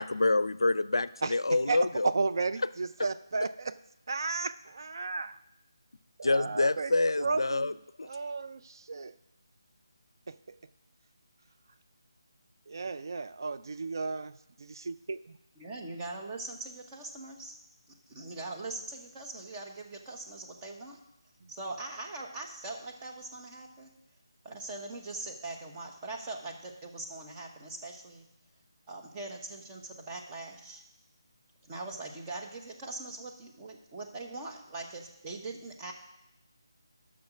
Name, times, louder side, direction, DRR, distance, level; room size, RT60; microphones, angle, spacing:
voice 1, 0.0-2.1 6.2-7.7 8.0-8.1, left 2 dB, 85° left, 17 dB, 0.4 m, -27 dB
voice 2, 1.2-3.8 4.1-5.4 6.2-7.8 8.0-9.1 10.3-10.4 12.7-15.4 21.4-21.5, right 4 dB, 55° right, 12 dB, 0.4 m, -34 dB
voice 3, 15.6-17.6 17.9-21.0 21.5-23.9 24.4-28.3 28.9-30.8 31.6-35.9, right 2 dB, 20° right, 0 dB, 1.1 m, -41 dB
10.5 x 6.2 x 6.0 m, 0.84 s
figure-of-eight pair, 160°, 2 cm